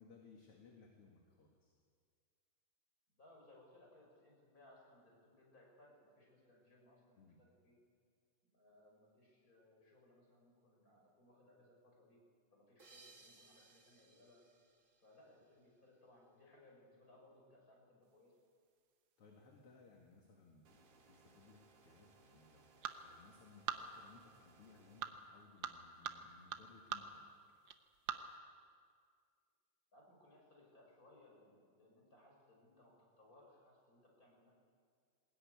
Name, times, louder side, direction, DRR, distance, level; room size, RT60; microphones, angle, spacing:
voice 1, 0.0-1.8 7.2-7.4 19.2-27.3, left 4 dB, 45° left, 1 dB, 2.7 m, -63 dB
voice 2, 3.2-7.8 8.4-12.2 12.5-14.4 15.0-18.4 29.9-34.5, left 1 dB, 25° left, -1 dB, 6.7 m, -65 dB
sound 1, 12.8-15.9, right 3 dB, 40° right, 1.1 m, -65 dB
sound 2, 18.0-28.4, right 7 dB, 85° right, 1.0 m, -50 dB
sound 3, 20.7-25.0, right 4 dB, 60° right, 3.5 m, -68 dB
22.5 x 20.0 x 9.6 m, 2.1 s
omnidirectional pair, 3.8 m